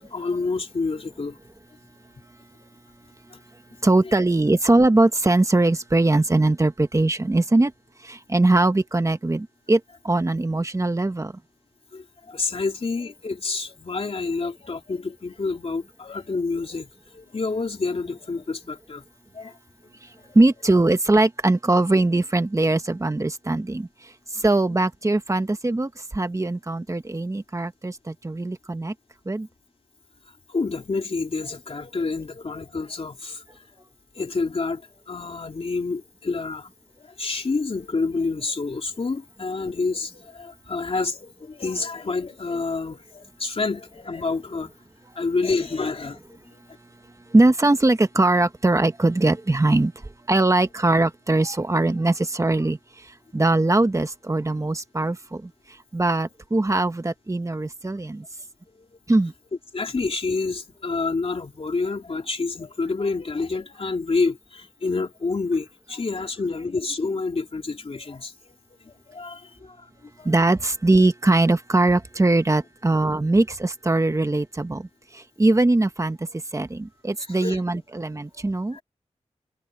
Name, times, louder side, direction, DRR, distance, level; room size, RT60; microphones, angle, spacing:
voice 1, 0.0-1.4 3.3-3.4 11.9-19.0 19.3-19.6 20.3-20.4 24.3-24.8 30.5-33.6 34.1-34.8 35.1-36.7 37.0-44.7 45.1-46.6 58.7-58.9 59.7-68.6 68.8-70.3 77.2-77.6 78.7-78.8, left 3 dB, 55° left, 2.9 m, -28 dB
voice 2, 3.8-7.7 8.0-9.8 10.0-11.3 20.3-23.9 24.3-28.9 29.3-29.5 47.3-49.9 50.3-52.8 53.3-55.5 55.9-58.2 59.1-59.3 70.2-74.9 75.1-76.2 76.5-78.8, right 2 dB, 25° right, 1.4 m, -21 dB
wide cardioid pair, 100°, 12 cm